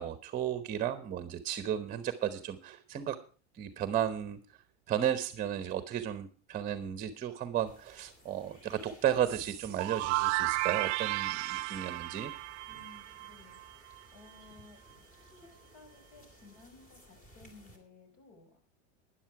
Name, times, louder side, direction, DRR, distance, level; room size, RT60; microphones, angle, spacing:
voice 1, 0.0-3.2 3.5-4.4 4.9-12.3, right 10 dB, 25° right, 11 dB, 0.9 m, -34 dB
sound 1, 7.7-17.8, equal, 25° left, 3.2 m, -58 dB
sound 2, 9.2-14.0, right 21 dB, 75° right, 0.6 m, -34 dB
voice 2, 12.7-13.6 14.1-14.8 15.5-18.6, left 3 dB, 60° left, 6 dB, 5.8 m, -57 dB
12.5 x 10.5 x 4.7 m, 0.38 s
supercardioid pair, 135°, 35 cm